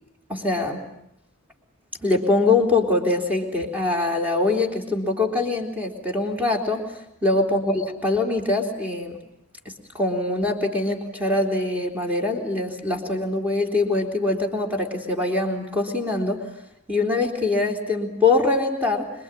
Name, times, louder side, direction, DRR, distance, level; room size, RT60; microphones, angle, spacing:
voice 1, 0.3-0.8 2.0-9.2 9.9-16.5 16.9-19.1, left 2 dB, 5° right, 1 dB, 3.8 m, -23 dB
26.5 x 23.0 x 9.0 m, 0.79 s
head